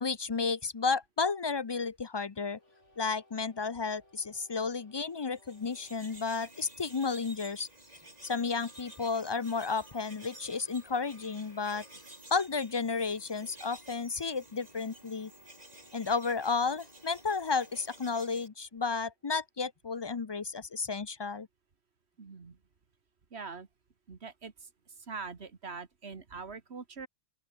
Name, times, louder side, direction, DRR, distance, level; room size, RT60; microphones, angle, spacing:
voice 1, 0.0-2.6 3.0-7.7 8.2-11.8 12.3-15.3 15.9-21.5, left 4 dB, 35° left, 0.4 m, -32 dB
sound 1, 2.5-6.4 8.1-12.2 14.6-19.4, left 1 dB, 80° left, 7.2 m, -64 dB
sound 2, 5.2-18.5, right 1 dB, 35° right, 4.4 m, -53 dB
voice 2, 22.2-22.6 23.3-23.7 24.1-27.1, right 5 dB, 60° right, 2.0 m, -43 dB
open air
omnidirectional pair, 1.2 m